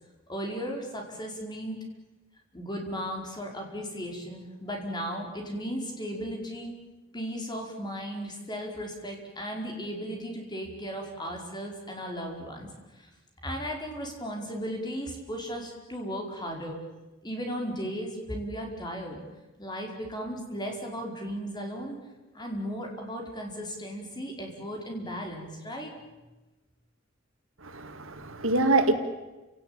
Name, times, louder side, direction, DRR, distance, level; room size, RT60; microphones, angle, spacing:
voice 1, 0.3-1.8 2.5-6.7 7.1-13.1 13.4-16.8 17.2-19.2 19.6-22.0 22.3-25.9, equal, 20° left, 1 dB, 4.9 m, -36 dB
voice 2, 27.6-28.9, right 2 dB, 85° right, 8 dB, 2.2 m, -25 dB
29.5 x 18.0 x 9.0 m, 1.1 s
head